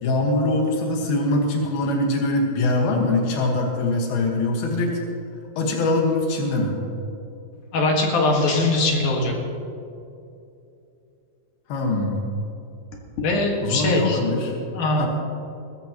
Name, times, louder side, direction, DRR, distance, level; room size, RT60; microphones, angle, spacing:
voice 1, 0.0-5.0 5.6-6.8 11.7-12.2 13.6-14.6 15.0-15.1, left 2 dB, 85° left, 0 dB, 3.5 m, -23 dB
voice 2, 7.7-9.3 13.2-14.2 14.7-15.1, left 2 dB, 60° left, 0 dB, 3.0 m, -21 dB
21.0 x 14.5 x 3.0 m, 2.7 s
omnidirectional pair, 4.2 m